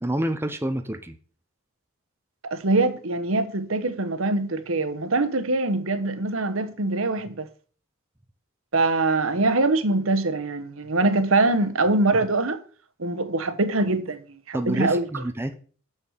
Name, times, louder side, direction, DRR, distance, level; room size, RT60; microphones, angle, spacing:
voice 1, 0.0-1.1 14.5-15.5, right 1 dB, 10° right, 0.7 m, -28 dB
voice 2, 2.5-7.5 8.7-12.6 13.0-15.1, right 2 dB, 70° right, 1.1 m, -23 dB
6.9 x 6.5 x 7.1 m
head